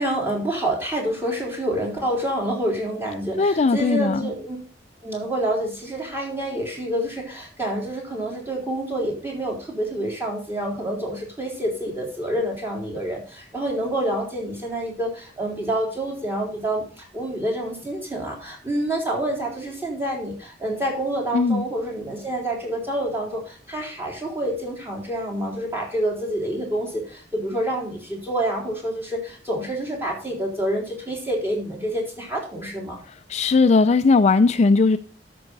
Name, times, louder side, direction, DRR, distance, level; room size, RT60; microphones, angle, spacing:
voice 1, 0.0-4.6 5.0-33.0, right 1 dB, 15° right, 3.7 m, -27 dB
voice 2, 3.4-4.3 21.3-21.7 33.3-35.0, left 4 dB, 40° left, 0.4 m, -18 dB
13.0 x 6.2 x 4.0 m
head